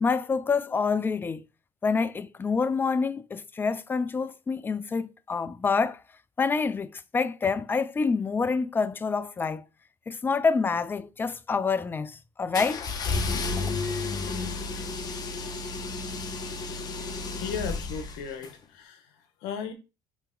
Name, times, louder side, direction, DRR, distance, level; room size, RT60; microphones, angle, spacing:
voice 1, 0.0-1.4 1.8-6.0 6.4-9.6 10.1-12.9 13.5-13.6, left 4 dB, 20° left, 0.3 m, -27 dB
sound 1, 12.5-18.5, left 3 dB, 40° left, 0.8 m, -32 dB
voice 2, 17.4-19.0 19.4-19.7, left 7 dB, 75° left, 0.9 m, -35 dB
3.3 x 2.9 x 3.7 m
supercardioid pair, 80°, 10 cm